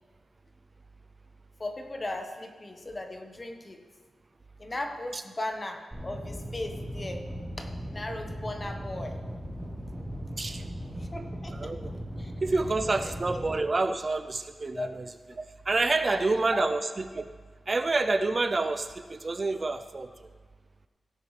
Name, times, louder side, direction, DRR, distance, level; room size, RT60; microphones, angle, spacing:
voice 1, 1.6-3.8 4.6-7.2 7.6-9.2 11.0-11.7 12.2-12.3 14.7-14.9 16.0-16.7, left 2 dB, 25° left, 4 dB, 1.2 m, -37 dB
sound 1, 5.9-13.5, equal, 5° right, 3.8 m, -38 dB
voice 2, 11.5-11.9 12.4-15.1 15.7-17.2 17.7-20.3, right 3 dB, 35° right, 9 dB, 0.4 m, -28 dB
16.5 x 9.8 x 3.3 m, 1.5 s
wide cardioid pair, 110°, 0 cm